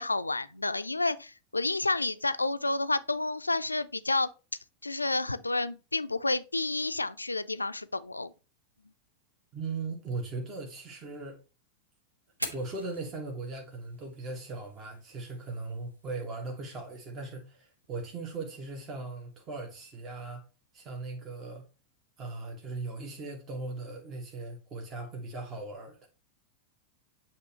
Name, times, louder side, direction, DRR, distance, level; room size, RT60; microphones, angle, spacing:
voice 1, 0.0-4.3 4.8-8.3, left 2 dB, 80° left, 0.4 m, -30 dB
voice 2, 9.5-11.4 12.5-20.4 20.7-21.7 22.2-26.1, right 3 dB, 30° right, 1.3 m, -38 dB
Fire, 12.3-20.3, equal, 85° right, 1.0 m, -47 dB
8.2 x 3.0 x 4.3 m
figure-of-eight pair, 90°, 0 cm